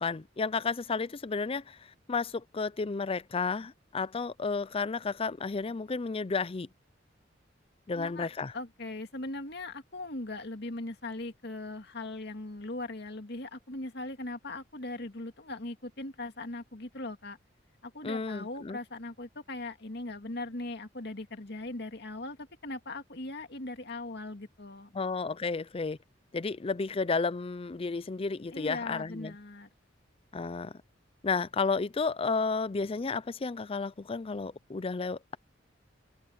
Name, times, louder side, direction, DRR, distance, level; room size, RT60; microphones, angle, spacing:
voice 1, 0.0-1.8 2.1-6.7 7.9-8.5 18.0-18.8 24.9-26.0 26.3-29.4 30.3-30.7 31.2-35.4, left 4 dB, 30° left, 0.5 m, -32 dB
voice 2, 7.9-8.3 8.5-17.4 17.8-24.9 28.5-29.7, left 2 dB, 60° left, 2.2 m, -39 dB
head